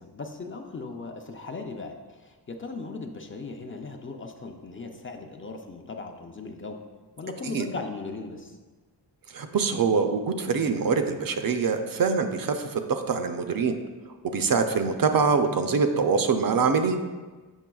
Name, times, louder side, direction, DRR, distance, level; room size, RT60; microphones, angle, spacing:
voice 1, 0.0-6.8 7.2-8.6, left 3 dB, 30° left, 4 dB, 0.4 m, -38 dB
voice 2, 9.3-13.8 14.3-17.0, right 5 dB, 55° right, 7 dB, 0.5 m, -24 dB
7.2 x 5.7 x 2.3 m, 1.3 s
wide cardioid pair, 120°, 41 cm